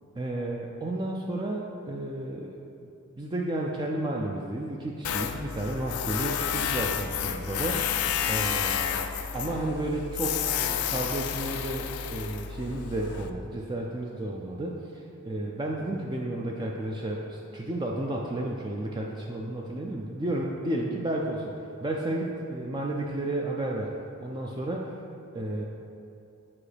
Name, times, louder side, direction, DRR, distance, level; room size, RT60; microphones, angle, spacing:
voice 1, 0.2-2.6 3.2-7.9 8.3-8.9 9.3-23.9 24.2-25.0 25.3-25.6, right 1 dB, 20° right, -1 dB, 0.3 m, -32 dB
Tools, 5.0-13.3, left 8 dB, 85° left, 0.4 m, -30 dB
8.5 x 4.8 x 3.3 m, 2.6 s
head